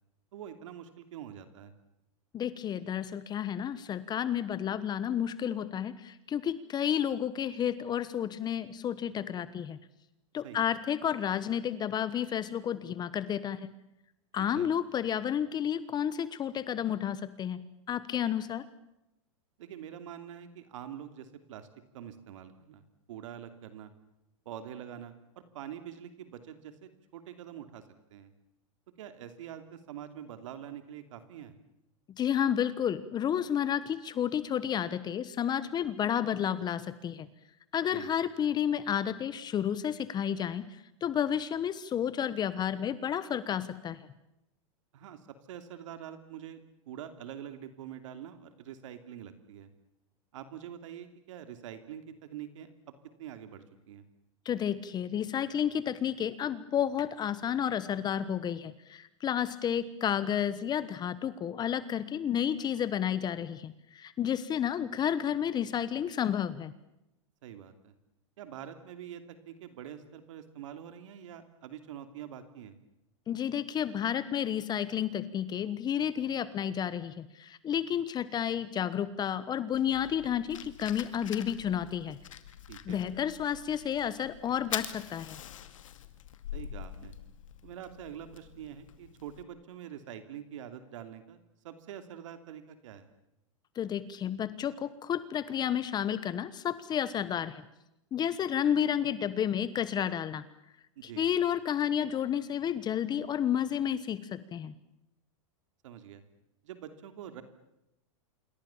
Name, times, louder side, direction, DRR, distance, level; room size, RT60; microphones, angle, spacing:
voice 1, 0.3-1.7 10.4-10.7 14.5-14.7 19.6-21.7 21.9-22.8 23.1-23.9 24.4-25.1 25.5-27.8 28.1-28.3 29.0-31.5 37.9-38.1 44.9-45.2 45.5-49.7 50.3-52.7 53.2-54.0 67.4-67.9 68.4-72.7 82.7-83.0 86.5-87.1 87.6-91.4 91.6-93.1 101.0-101.3 105.8-106.2 106.6-107.4, right 10 dB, 75° right, 9 dB, 2.8 m, -45 dB
voice 2, 2.3-9.8 10.3-13.7 14.3-17.6 17.9-18.6 32.2-37.3 37.7-44.0 54.4-66.7 73.3-82.2 82.8-85.4 93.7-97.6 98.1-100.4 101.0-104.7, left 9 dB, 25° left, 15 dB, 1.2 m, -31 dB
Fire, 79.7-89.4, left 10 dB, 85° left, 2.2 m, -44 dB
27.5 x 23.0 x 7.3 m, 0.86 s
hypercardioid pair, 130°, 16 cm